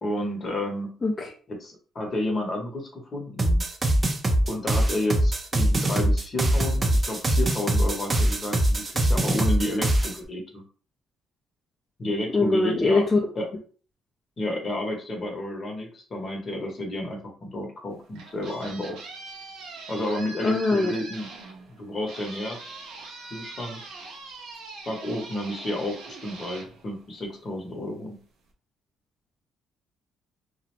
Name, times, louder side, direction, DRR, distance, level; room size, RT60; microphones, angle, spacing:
voice 1, 0.0-0.9 1.5-3.6 4.5-10.6 12.0-13.0 13.3-13.5 14.4-19.0 19.9-21.3 21.7-22.7 23.3-23.8 24.9-28.2, left 1 dB, 40° left, 1 dB, 0.9 m, -31 dB
voice 2, 1.0-1.3 12.3-13.2 20.4-21.0, left 3 dB, 25° left, 0 dB, 0.4 m, -22 dB
sound 1, 3.4-10.2, right 1 dB, 30° right, 0.5 m, -22 dB
sound 2, 17.9-27.6, right 3 dB, 80° right, 0.7 m, -42 dB
2.4 x 2.0 x 2.9 m, 0.40 s
cardioid pair, 100°, 0 cm